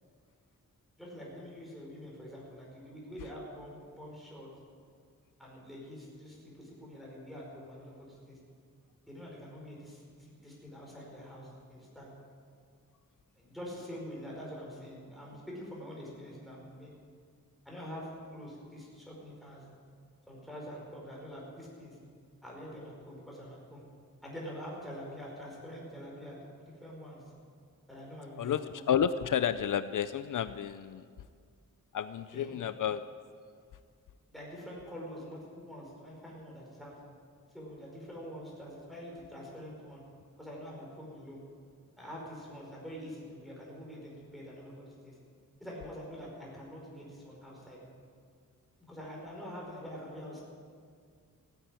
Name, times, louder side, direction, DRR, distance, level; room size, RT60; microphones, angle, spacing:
voice 1, 1.0-4.5 5.4-8.4 9.1-12.1 13.4-16.9 17.6-19.6 20.3-22.0 22.4-23.9 24.2-27.2 27.9-28.9 32.3-32.5 34.3-36.9 37.5-40.0 40.4-41.4 42.0-45.2 45.6-47.8 48.9-50.4, equal, ahead, -4 dB, 4.7 m, -45 dB
voice 2, 28.9-31.0 31.9-33.0, left 9 dB, 70° left, 13 dB, 0.5 m, -30 dB
16.0 x 9.6 x 8.9 m, 2.1 s
wide cardioid pair, 150°, 32 cm